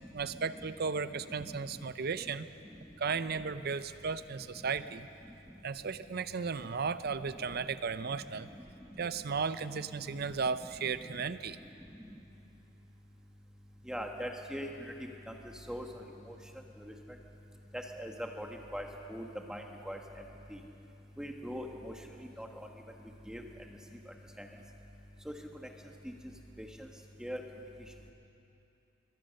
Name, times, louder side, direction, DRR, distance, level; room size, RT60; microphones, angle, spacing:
voice 1, 0.1-2.5 3.0-5.1 5.6-8.5 9.0-11.6, right 5 dB, 55° right, 13 dB, 0.6 m, -35 dB
voice 2, 1.1-1.8 2.7-2.8 3.3-3.4 7.0-7.7 8.3-8.5 8.9-9.0 9.7-10.2 10.5-11.2 12.0-12.1 13.8-14.9 15.3-15.4 15.7-16.4 16.8-16.9 17.7-20.2 20.5-20.6 21.2-21.9 22.2-22.7 23.3-23.8 24.1-24.5 25.2-25.4 26.0-26.1 26.6-26.9 27.2-27.4, equal, 5° right, 2 dB, 1.5 m, -43 dB
24.0 x 18.0 x 6.5 m, 2.8 s
head